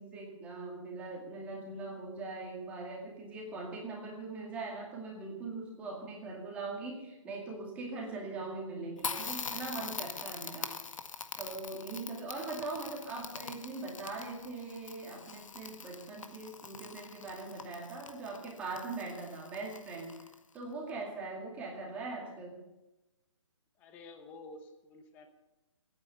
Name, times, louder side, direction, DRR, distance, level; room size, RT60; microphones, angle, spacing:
voice 1, 0.0-10.7 11.4-20.2 20.5-22.6, right 3 dB, 10° right, -1 dB, 2.2 m, -41 dB
Crackle, 9.0-20.6, left 5 dB, 85° left, 1.7 m, -43 dB
voice 2, 23.8-25.3, left 2 dB, 10° left, 6 dB, 0.9 m, -50 dB
22.0 x 9.5 x 6.9 m, 0.98 s
hypercardioid pair, 175°, 16 cm